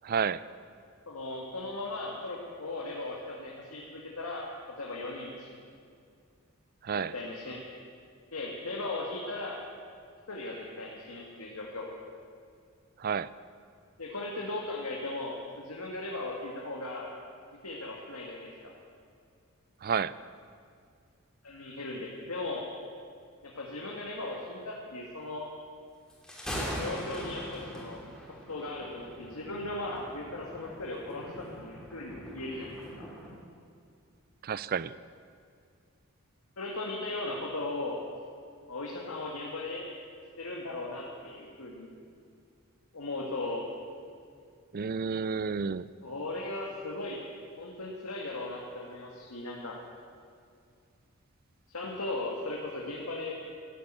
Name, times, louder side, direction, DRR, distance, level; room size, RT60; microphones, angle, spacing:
voice 1, 0.0-0.4 6.8-7.1 13.0-13.3 19.8-20.1 34.4-34.9 44.7-45.9, right 6 dB, 45° right, 17 dB, 0.4 m, -30 dB
voice 2, 1.1-4.5 4.8-5.6 6.9-7.7 8.3-9.6 10.3-11.9 14.0-17.1 17.6-18.7 21.4-22.7 23.4-25.5 26.8-28.0 28.5-33.0 36.6-38.0 38.7-39.8 40.4-41.9 42.9-43.7 46.0-47.2 47.6-49.8 51.7-53.3, left 2 dB, 85° left, -2 dB, 2.0 m, -37 dB
Thunder, 26.1-33.3, equal, 5° left, 3.0 m, -41 dB
14.0 x 10.5 x 9.1 m, 2.3 s
head